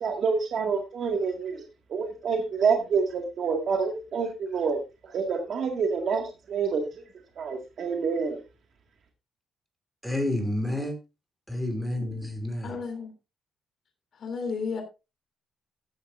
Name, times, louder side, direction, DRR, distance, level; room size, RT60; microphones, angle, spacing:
voice 1, 0.0-1.6 1.9-7.0 7.4-8.4, right 5 dB, 50° right, 1.9 m, -27 dB
voice 2, 10.0-10.9 11.5-12.8, left 1 dB, 5° right, 2.7 m, -29 dB
voice 3, 12.6-13.1 14.2-14.8, left 5 dB, 50° left, 3.0 m, -32 dB
14.0 x 10.5 x 2.6 m
cardioid pair, 160°, 0 cm